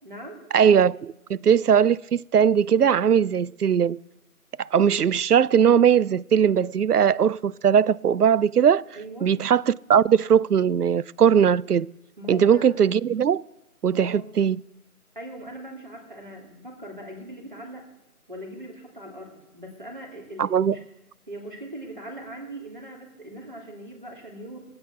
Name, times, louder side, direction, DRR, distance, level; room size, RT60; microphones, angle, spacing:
voice 1, 0.0-0.4 9.0-9.3 12.2-12.7 14.0-14.2 15.1-17.9 18.3-20.8 21.3-24.6, right 1 dB, 35° right, 2.6 m, -40 dB
voice 2, 0.5-4.0 4.6-8.8 9.2-11.9 12.3-13.4 13.8-14.6 20.4-20.7, right 8 dB, 85° right, 0.5 m, -20 dB
18.5 x 8.9 x 4.5 m
figure-of-eight pair, 175°, 45 cm